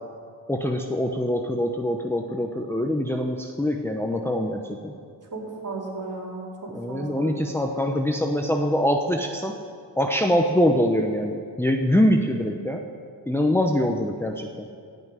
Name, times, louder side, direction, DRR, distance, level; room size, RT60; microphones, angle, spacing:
voice 1, 0.5-4.9 6.7-9.5 10.0-12.8 13.3-14.7, equal, 5° left, 3 dB, 0.9 m, -24 dB
voice 2, 5.3-7.3, right 3 dB, 45° right, -2 dB, 4.0 m, -35 dB
16.0 x 6.1 x 9.8 m, 2.2 s
cardioid pair, 80°, 44 cm